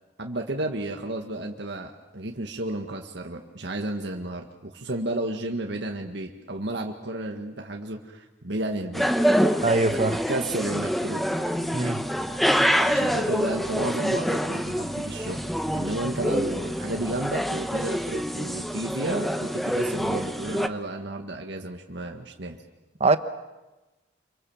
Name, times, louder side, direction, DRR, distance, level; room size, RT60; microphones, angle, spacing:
voice 1, 0.2-9.1 9.9-11.2 12.8-15.4 15.7-22.6, right 1 dB, 65° right, 3 dB, 1.8 m, -32 dB
sound 1, 8.9-20.7, equal, ahead, 0.9 m, -26 dB
voice 2, 9.6-10.1 11.7-12.1 23.0-23.2, right 3 dB, 35° right, 11 dB, 1.0 m, -22 dB
27.5 x 24.0 x 7.3 m, 1.1 s
head